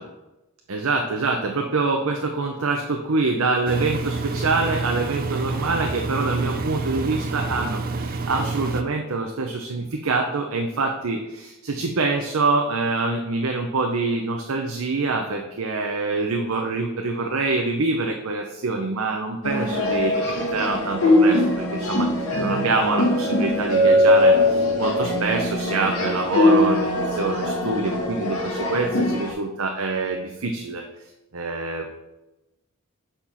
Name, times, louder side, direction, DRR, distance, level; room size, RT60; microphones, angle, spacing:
voice 1, 0.7-30.8 31.3-31.9, right 3 dB, 75° right, 3 dB, 0.7 m, -25 dB
Engine, 3.7-8.8, right 3 dB, 40° right, 0.5 m, -28 dB
sound 1, 19.4-29.3, left 1 dB, 85° left, 1.7 m, -21 dB
6.9 x 4.4 x 5.6 m, 0.98 s
head